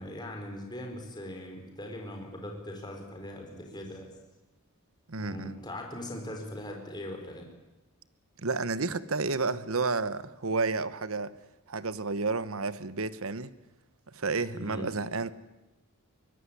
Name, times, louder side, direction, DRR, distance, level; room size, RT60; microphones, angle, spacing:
voice 1, 0.0-4.1 5.2-7.5 14.5-15.0, left 1 dB, 20° left, 4.2 m, -40 dB
voice 2, 5.1-5.5 8.4-11.3 11.7-13.5 14.1-15.3, right 3 dB, 70° right, 1.1 m, -31 dB
23.0 x 18.0 x 9.9 m
head